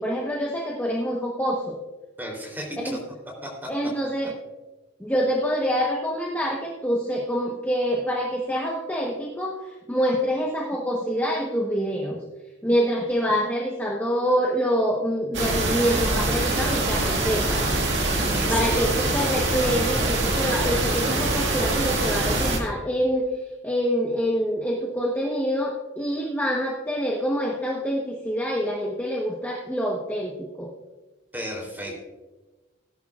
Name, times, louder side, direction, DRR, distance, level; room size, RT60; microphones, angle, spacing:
voice 1, 0.0-1.8 2.8-3.0 3.7-4.3 5.0-12.2 12.6-17.6 18.2-23.3 23.6-30.7, equal, 10° left, -2 dB, 1.1 m, -26 dB
voice 2, 2.2-2.8 3.4-3.7 18.3-18.8 31.3-32.0, equal, 10° right, -1 dB, 3.3 m, -34 dB
sound 1, 15.3-22.6, right 2 dB, 70° right, 1.9 m, -24 dB
17.5 x 10.5 x 2.4 m, 1.2 s
head